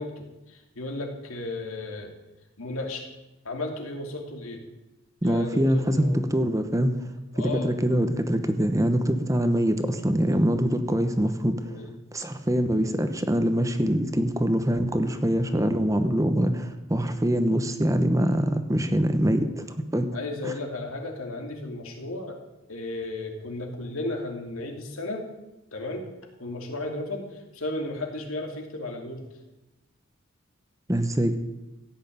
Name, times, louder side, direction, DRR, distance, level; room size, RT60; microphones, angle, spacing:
voice 1, 0.0-2.1 2.6-3.1 3.4-4.6 5.2-6.2 7.3-7.8 11.6-11.9 20.1-22.4 22.7-25.3 25.7-26.1 26.4-29.3, left 2 dB, 85° left, 2 dB, 2.8 m, -34 dB
voice 2, 5.2-11.6 12.1-19.6 19.9-20.1 20.4-20.5 30.9-31.4, equal, 15° right, 8 dB, 1.0 m, -24 dB
16.0 x 6.5 x 9.2 m, 1.0 s
head